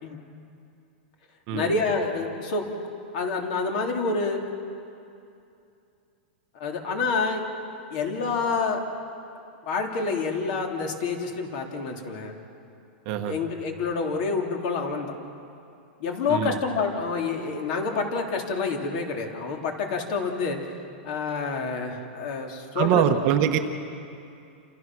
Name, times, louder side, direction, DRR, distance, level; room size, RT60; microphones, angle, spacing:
voice 1, 1.5-2.7 3.1-4.4 6.5-7.4 7.9-8.8 9.7-12.3 13.2-15.1 16.0-20.6 21.0-23.0, left 4 dB, 45° left, 2 dB, 3.3 m, -28 dB
voice 2, 13.0-13.3 16.3-16.6 22.7-23.6, right 9 dB, 35° right, 5 dB, 1.3 m, -23 dB
28.5 x 28.0 x 6.3 m, 2.6 s
supercardioid pair, 170°, 6 cm